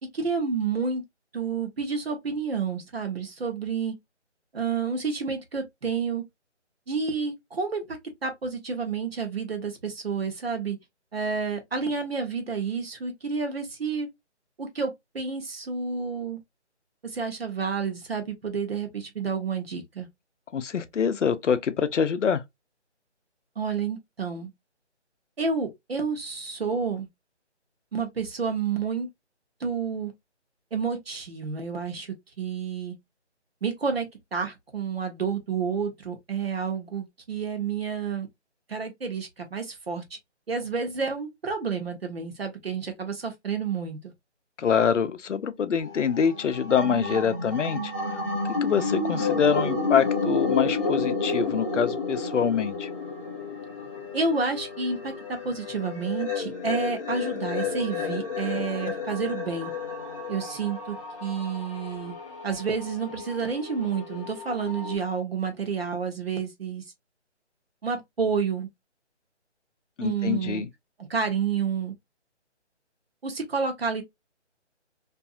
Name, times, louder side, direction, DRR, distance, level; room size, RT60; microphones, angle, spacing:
voice 1, 0.1-1.0 1.3-3.9 4.5-6.2 6.9-10.8 11.1-14.1 14.6-16.4 17.0-20.1 23.6-24.5 25.4-27.1 27.9-29.1 29.6-30.1 30.7-32.9 33.6-38.3 38.7-40.0 40.5-44.0 54.1-59.7 60.3-62.2 62.4-66.8 67.8-68.7 70.0-70.6 71.0-71.9 73.2-74.0, right 5 dB, 55° right, 1.0 m, -30 dB
voice 2, 20.5-22.4 44.6-47.9 48.5-52.9 70.0-70.7, left 7 dB, 85° left, 0.6 m, -25 dB
sound 1, 45.8-65.0, left 4 dB, 25° left, 0.9 m, -31 dB
2.6 x 2.3 x 2.4 m
figure-of-eight pair, 170°, 35 cm